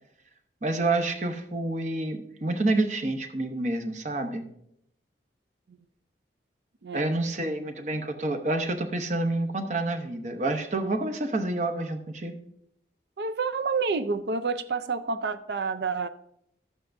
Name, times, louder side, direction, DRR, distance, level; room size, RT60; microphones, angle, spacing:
voice 1, 0.6-4.5 6.9-12.4, right 2 dB, 40° right, 7 dB, 0.8 m, -28 dB
voice 2, 13.2-16.1, right 4 dB, 70° right, 11 dB, 0.5 m, -29 dB
12.5 x 8.3 x 2.6 m, 0.74 s
head